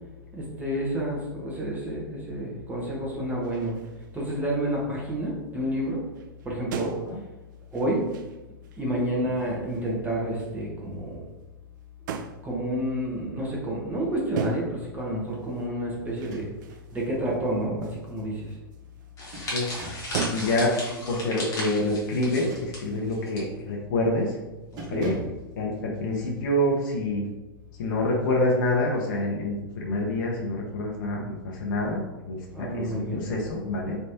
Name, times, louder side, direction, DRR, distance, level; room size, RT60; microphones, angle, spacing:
voice 1, 0.3-3.8 4.1-6.1 6.4-7.0 7.7-8.0 8.7-11.3 12.4-16.5 16.9-18.6 24.7-25.1 32.5-33.2, right 1 dB, 15° right, -4 dB, 1.1 m, -29 dB
sound 1, 3.4-4.4 4.7-5.3 5.9-6.0 6.1-9.0 9.4-10.0 10.4-10.6 12.1-12.5 14.4-14.9 15.3-19.6 20.1-20.8 21.2-23.3, right 6 dB, 55° right, 0.4 m, -39 dB
sound 2, 16.1-16.9 17.3-17.4 18.8-20.2 22.2-23.1 23.6-23.9 24.2-24.4 24.8-25.5, right 1 dB, 35° right, 0.9 m, -42 dB
sound 3, 19.2-23.4 23.7-23.9 24.8-25.1, left 1 dB, 25° left, 1.3 m, -35 dB
voice 2, 19.4-20.7 21.1-24.4 24.9-25.1 25.6-27.2 27.8-34.0, left 1 dB, 55° left, -2 dB, 0.9 m, -27 dB
3.3 x 3.1 x 2.8 m, 1.1 s
hypercardioid pair, 105°, 12 cm